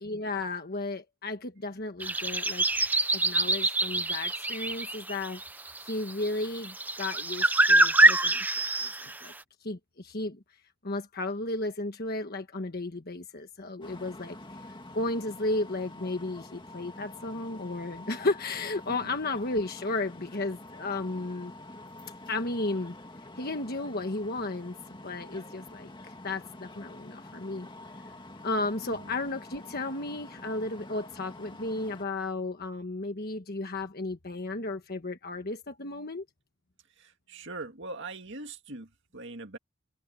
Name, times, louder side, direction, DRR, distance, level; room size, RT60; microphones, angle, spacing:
voice 1, 0.0-5.4 5.8-9.3 9.6-10.4 10.8-14.4 14.7-21.5 22.3-23.0 23.4-24.8 25.0-27.7 28.4-36.2, left 2 dB, 45° left, 1.4 m, -34 dB
sound 1, 2.0-9.3, right 2 dB, 10° right, 0.6 m, -25 dB
sound 2, 13.8-32.1, left 2 dB, 20° left, 2.2 m, -47 dB
voice 2, 37.0-39.6, right 2 dB, 55° right, 2.3 m, -42 dB
head